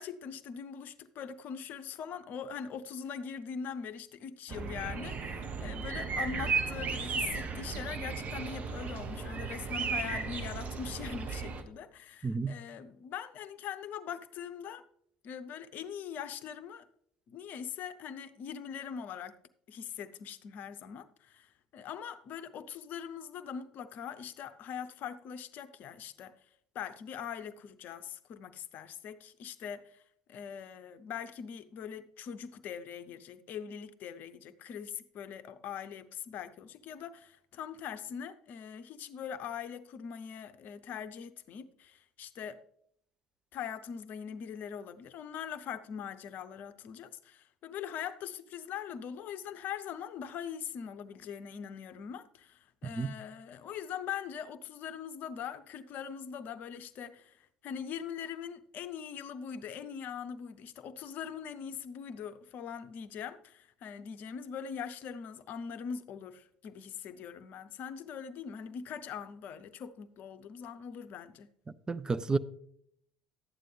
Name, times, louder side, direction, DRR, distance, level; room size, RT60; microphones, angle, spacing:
voice 1, 0.0-14.8 15.2-16.9 17.3-19.4 19.7-26.3 26.7-30.0 30.3-42.6 43.5-71.5, left 7 dB, 45° left, 0.7 m, -42 dB
sound 1, 4.5-11.6, right 5 dB, 40° right, 1.1 m, -35 dB
voice 2, 12.2-12.6 53.0-53.1 71.9-72.4, right 4 dB, 20° right, 0.5 m, -30 dB
12.0 x 9.1 x 3.3 m
figure-of-eight pair, 60°, 4 cm